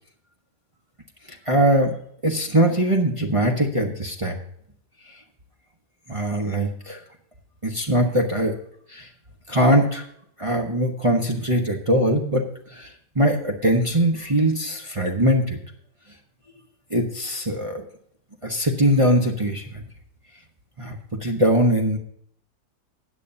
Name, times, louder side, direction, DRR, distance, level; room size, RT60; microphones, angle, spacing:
voice 1, 1.5-1.9 2.2-4.4 6.1-7.0 7.6-8.5 8.9-9.1 9.5-10.0 10.4-12.4 12.7-12.9 13.1-15.6 16.9-17.8 18.4-19.8 20.8-22.0, right 1 dB, 20° right, 0 dB, 1.0 m, -21 dB
16.0 x 9.2 x 2.7 m, 0.67 s
omnidirectional pair, 1.8 m